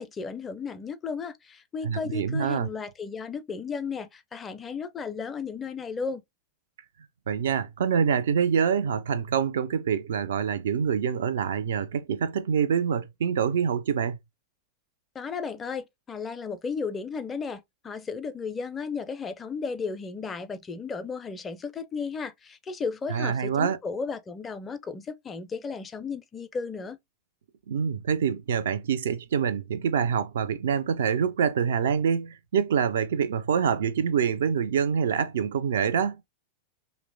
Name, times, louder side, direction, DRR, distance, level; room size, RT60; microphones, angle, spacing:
voice 1, 0.0-6.2 15.1-27.0, left 5 dB, 20° left, 0.4 m, -34 dB
voice 2, 1.8-2.7 7.3-14.2 23.1-23.8 27.7-36.2, right 7 dB, 60° right, 0.3 m, -26 dB
2.9 x 2.1 x 2.5 m
figure-of-eight pair, 90°, 0 cm